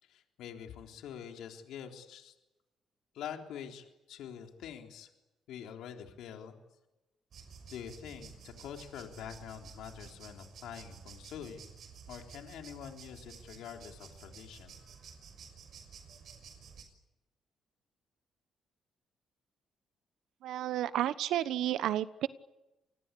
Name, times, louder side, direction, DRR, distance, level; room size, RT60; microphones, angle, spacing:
voice 1, 0.0-2.3 3.1-5.1 5.5-6.5 7.7-11.6 12.1-14.8, left 9 dB, 85° left, 3 dB, 3.6 m, -45 dB
sound 1, 7.3-16.8, right 6 dB, 60° right, 6.3 m, -52 dB
voice 2, 20.4-22.3, right 12 dB, 85° right, 14 dB, 1.1 m, -31 dB
28.5 x 21.0 x 8.4 m, 0.99 s
cardioid pair, 90°, 0 cm